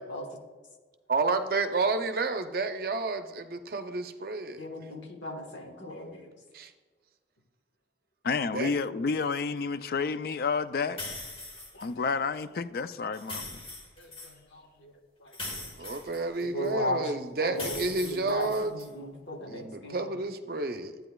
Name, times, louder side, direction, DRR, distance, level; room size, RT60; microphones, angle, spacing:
voice 1, 1.1-4.6 6.5-6.7 8.5-8.7 15.8-18.8 19.5-21.0, right 3 dB, 55° right, 0.6 m, -30 dB
voice 2, 4.6-6.2 14.8-14.9 16.5-17.0 17.4-20.0, left 1 dB, 90° left, 1.4 m, -36 dB
voice 3, 8.2-11.0 11.8-13.6, left 5 dB, 55° left, 0.3 m, -30 dB
sound 1, 11.0-11.9 13.1-14.3 15.3-16.7 17.5-18.9, left 2 dB, 30° left, 1.6 m, -40 dB
12.0 x 8.9 x 2.3 m
head